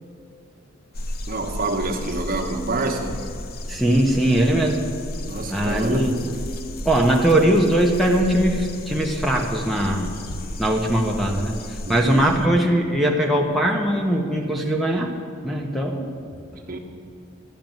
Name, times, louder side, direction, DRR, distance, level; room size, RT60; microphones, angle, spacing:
sound 1, 0.9-12.5, left 1 dB, 50° left, 0.7 m, -33 dB
voice 1, 1.3-3.3 5.3-6.1 11.9-12.3 16.7-16.8, right 2 dB, 50° right, 2 dB, 1.2 m, -27 dB
voice 2, 3.7-4.9 5.5-6.1 6.8-10.1 10.6-15.1 15.4-16.1, right 1 dB, ahead, 1 dB, 0.9 m, -20 dB
12.0 x 6.7 x 9.0 m, 2.4 s
head